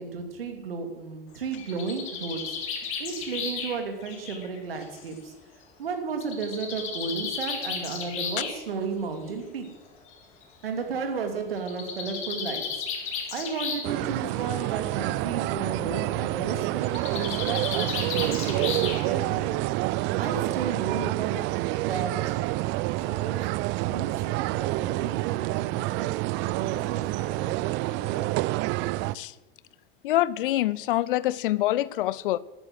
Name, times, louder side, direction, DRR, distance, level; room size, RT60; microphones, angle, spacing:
voice 1, 0.0-2.6 3.0-5.3 5.8-9.7 10.6-12.6 13.0-19.6 20.2-21.4 21.8-22.4 23.0-23.5 23.9-28.4, right 5 dB, 75° right, 2.9 m, -34 dB
Bird, 1.3-5.1 6.2-8.6 9.6-9.7 10.1-10.2 10.4-10.5 11.6-14.0 14.3-14.7 16.8-19.3, left 6 dB, 45° left, 3.9 m, -34 dB
sound 1, 13.8-29.1, right 19 dB, 40° right, 0.4 m, -28 dB
voice 2, 30.0-32.4, left 15 dB, 65° left, 0.6 m, -25 dB
13.0 x 9.6 x 7.7 m
figure-of-eight pair, 75°, 29 cm